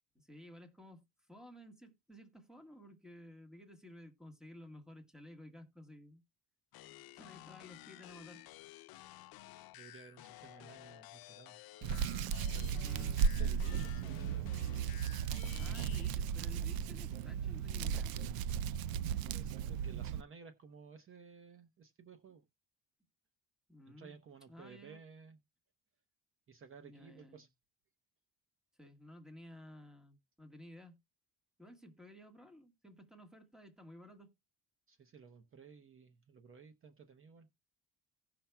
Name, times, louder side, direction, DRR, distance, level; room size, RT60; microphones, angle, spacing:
voice 1, 0.1-6.2 7.1-8.5 12.8-13.2 15.6-18.1 23.7-24.2 24.5-25.0 26.8-27.5 28.8-31.0 31.6-34.3, left 1 dB, ahead, 1.4 m, -54 dB
sound 1, 6.7-16.2, left 16 dB, 80° left, 0.6 m, -54 dB
voice 2, 9.7-11.6 12.5-14.5 18.8-18.9 19.3-22.4 23.9-25.4 26.5-27.5 34.9-37.5, right 6 dB, 35° right, 0.8 m, -56 dB
Hands, 11.8-20.2, right 7 dB, 75° right, 0.5 m, -35 dB
17.5 x 5.8 x 2.2 m
cardioid pair, 145°, 36 cm